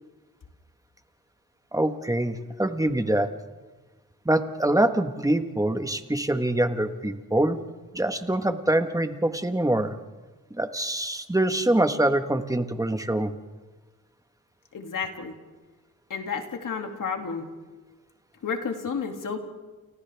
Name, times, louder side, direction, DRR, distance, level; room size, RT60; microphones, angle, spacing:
voice 1, 1.7-3.3 4.2-7.6 7.9-9.9 10.5-13.3, right 1 dB, 10° right, 7 dB, 1.4 m, -24 dB
voice 2, 14.7-15.4 16.1-17.5 18.4-19.4, left 5 dB, 75° left, 3 dB, 2.6 m, -31 dB
29.5 x 29.5 x 3.5 m, 1.3 s
wide cardioid pair, 90°, 32 cm